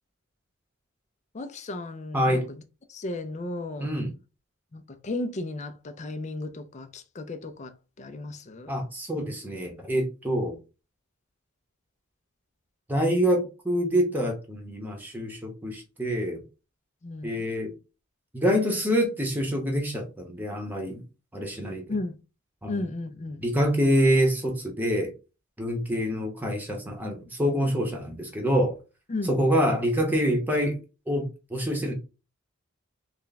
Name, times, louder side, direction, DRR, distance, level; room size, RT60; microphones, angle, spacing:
voice 1, 1.3-2.6 2.9-3.9 4.7-8.7 17.0-17.4 21.9-22.2 22.7-23.4 29.1-29.3, left 2 dB, 35° left, 0.4 m, -34 dB
voice 2, 2.1-2.5 3.8-4.1 8.7-10.6 12.9-16.4 17.2-17.7 18.3-21.0 21.3-21.9 22.6-22.7 23.4-25.1 25.6-28.8 29.3-30.8 31.1-31.9, equal, 10° right, 0.9 m, -26 dB
3.3 x 2.2 x 3.9 m
head